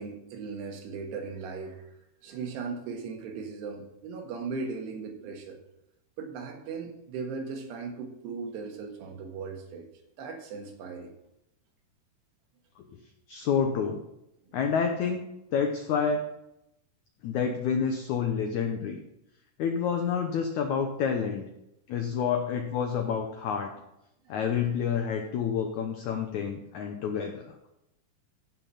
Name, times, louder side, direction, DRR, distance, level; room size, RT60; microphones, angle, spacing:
voice 1, 0.0-1.9 2.2-5.6 6.2-9.9 10.2-11.1 14.5-14.6 21.3-21.4 22.2-22.4 24.3-24.4, right 4 dB, 85° right, 3 dB, 3.7 m, -38 dB
voice 2, 13.3-14.0 14.5-15.2 15.5-16.3 17.2-19.0 19.6-21.5 21.9-23.7 24.3-27.5, left 6 dB, 85° left, 4 dB, 1.6 m, -28 dB
15.0 x 5.9 x 5.7 m, 0.85 s
omnidirectional pair, 4.7 m